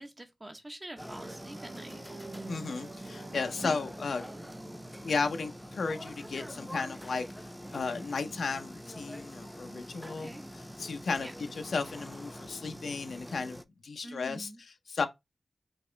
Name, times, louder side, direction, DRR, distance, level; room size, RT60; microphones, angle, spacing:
voice 1, 0.0-2.0 10.1-10.4 11.2-11.3 14.0-14.6, right 1 dB, 25° right, 0.8 m, -46 dB
sound 1, 1.0-13.6, equal, ahead, 0.3 m, -45 dB
sound 2, 1.2-5.8, right 3 dB, 60° right, 0.6 m, -48 dB
voice 2, 2.5-4.3 5.0-13.6 13.8-15.1, left 4 dB, 80° left, 0.6 m, -34 dB
4.0 x 3.0 x 3.2 m
wide cardioid pair, 120°, 0 cm